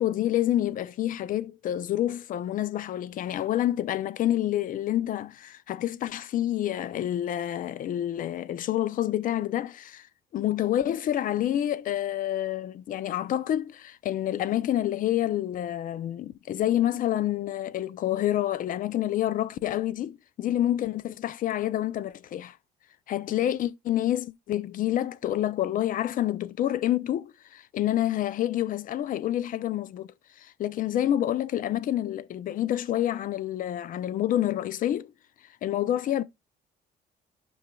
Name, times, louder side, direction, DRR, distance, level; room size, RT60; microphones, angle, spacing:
voice 1, 0.0-10.1 10.3-22.6 23.1-30.1 30.4-35.1 35.6-36.2, left 12 dB, 55° left, 0.5 m, -28 dB
13.0 x 5.5 x 2.3 m
cardioid pair, 110°, 17 cm